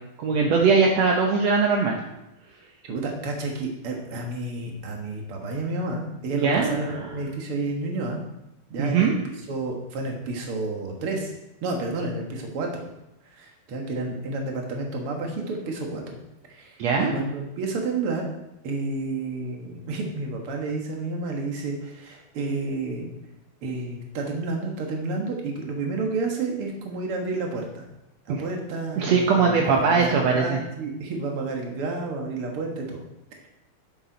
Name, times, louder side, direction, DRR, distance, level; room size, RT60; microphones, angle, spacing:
voice 1, 0.2-2.0 6.3-7.1 8.8-9.1 16.8-17.1 28.3-28.4 29.0-30.6, right 5 dB, 70° right, 0 dB, 1.6 m, -21 dB
voice 2, 2.8-8.2 8.7-9.1 9.5-11.3 11.6-12.8 13.3-16.2 16.5-18.3 18.6-23.1 23.6-27.8 28.3-33.0, right 3 dB, 50° right, 1 dB, 1.8 m, -30 dB
12.0 x 7.2 x 4.1 m, 0.91 s
omnidirectional pair, 4.3 m